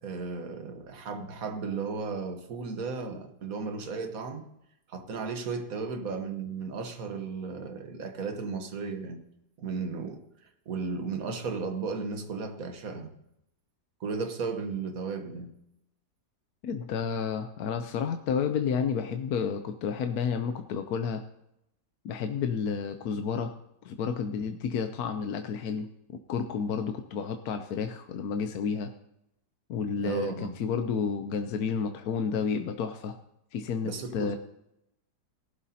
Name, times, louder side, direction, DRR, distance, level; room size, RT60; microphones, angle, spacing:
voice 1, 0.0-4.4 4.9-9.2 9.6-10.2 10.7-13.1 14.0-15.5 30.0-30.6 33.8-34.4, right 4 dB, 55° right, 1.4 m, -35 dB
voice 2, 16.6-21.2 22.0-23.5 23.8-25.9 26.3-28.9 29.7-33.2 33.5-34.4, left 6 dB, 65° left, 1.0 m, -31 dB
18.0 x 11.5 x 2.8 m
omnidirectional pair, 1.9 m